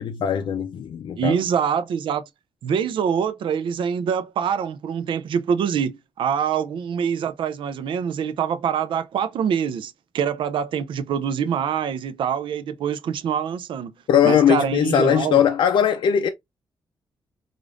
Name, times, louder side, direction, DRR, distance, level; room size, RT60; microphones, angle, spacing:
voice 1, 0.0-1.4 14.1-16.3, left 9 dB, 70° left, 0.5 m, -19 dB
voice 2, 1.2-2.2 2.6-13.9 14.2-15.4, right 7 dB, 80° right, 0.5 m, -25 dB
5.0 x 2.5 x 2.4 m
wide cardioid pair, 130°, 8 cm